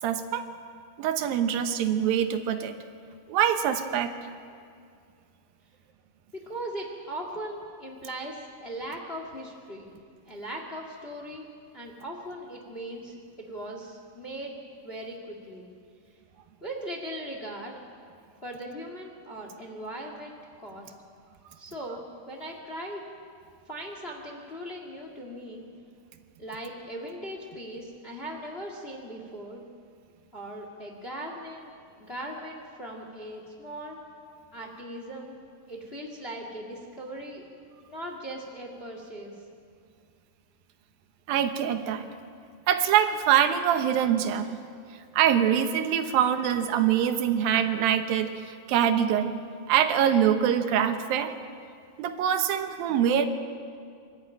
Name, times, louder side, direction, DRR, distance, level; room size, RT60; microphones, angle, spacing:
voice 1, 0.0-0.4 1.0-2.8 3.3-4.2 41.3-42.1 42.7-44.6 45.1-49.3 49.7-51.3 52.0-53.3, right 9 dB, 85° right, 8 dB, 2.8 m, -24 dB
voice 2, 6.3-9.9 10.3-11.5 11.7-13.1 13.5-14.6 14.8-15.7 16.6-17.8 18.4-20.9 21.6-23.0 23.7-25.7 26.4-29.6 30.3-31.7 32.0-34.0 34.5-35.4 35.7-37.5 37.9-39.4, right 1 dB, 25° left, 1 dB, 1.5 m, -39 dB
25.0 x 13.0 x 8.9 m, 2.3 s
omnidirectional pair, 4.0 m